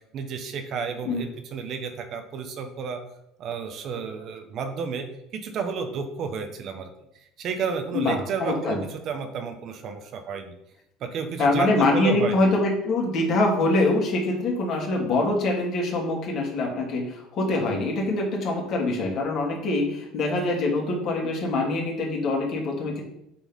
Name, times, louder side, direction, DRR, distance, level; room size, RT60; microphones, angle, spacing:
voice 1, 0.1-3.0 3.4-6.9 7.4-10.5 11.0-12.5, right 5 dB, 50° right, 7 dB, 1.1 m, -31 dB
voice 2, 7.9-8.8 11.4-23.0, left 2 dB, 50° left, -1 dB, 2.9 m, -24 dB
7.7 x 4.5 x 5.5 m, 0.80 s
supercardioid pair, 105°, 0 cm